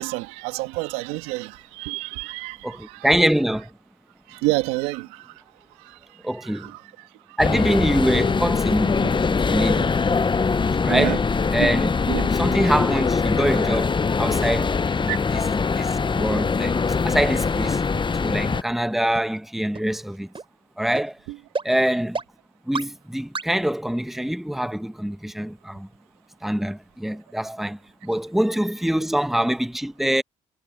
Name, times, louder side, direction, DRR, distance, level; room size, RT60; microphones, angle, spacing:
voice 1, 0.0-3.2 4.3-5.4 5.8-7.4 9.0-9.1 9.8-9.9 10.9-11.2 11.6-11.7 12.1-12.3 15.1-15.2 21.3-21.4, right 20 dB, 90° right, 2.5 m, -30 dB
voice 2, 2.6-3.7 6.2-6.7 7.4-9.0 9.3-9.9 10.8-11.2 11.5-11.9 12.4-15.1 15.7-16.8 17.0-17.8 18.2-20.3 20.8-21.2 21.6-22.2 22.7-25.9 26.4-30.2, right 1 dB, ahead, 1.1 m, -24 dB
sound 1, 7.4-18.6, left 5 dB, 30° left, 0.9 m, -22 dB
sound 2, 16.7-16.8 17.3-17.4 17.9-18.0 18.5-18.6 19.1-19.2 19.7-19.8 20.3-20.4 20.9-21.0 21.5-21.6 22.1-22.2 22.7-22.8 23.3-23.4, right 4 dB, 35° right, 3.9 m, -30 dB
supercardioid pair, 55°, 15 cm